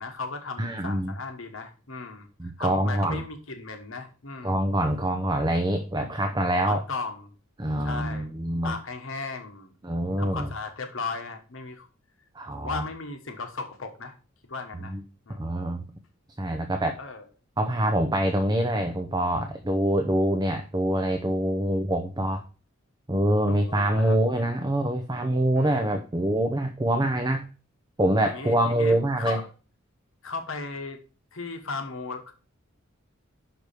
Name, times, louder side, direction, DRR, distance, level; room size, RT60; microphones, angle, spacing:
voice 1, 0.0-2.3 2.6-4.6 6.6-7.3 7.8-8.3 8.6-9.7 10.2-11.9 12.5-14.1 14.5-14.9 15.3-15.4 17.0-17.2 23.5-24.6 25.6-25.8 28.2-29.4 30.2-31.0 31.3-32.3, left 4 dB, 70° left, 5 dB, 1.3 m, -36 dB
voice 2, 0.6-1.1 2.4-3.2 4.4-6.8 7.6-8.8 9.8-10.5 12.3-12.8 14.8-15.0 15.3-15.8 16.4-17.0 17.6-22.4 23.1-27.5 28.0-29.4, right 1 dB, 20° right, 5 dB, 0.7 m, -25 dB
6.1 x 4.8 x 6.7 m, 0.36 s
head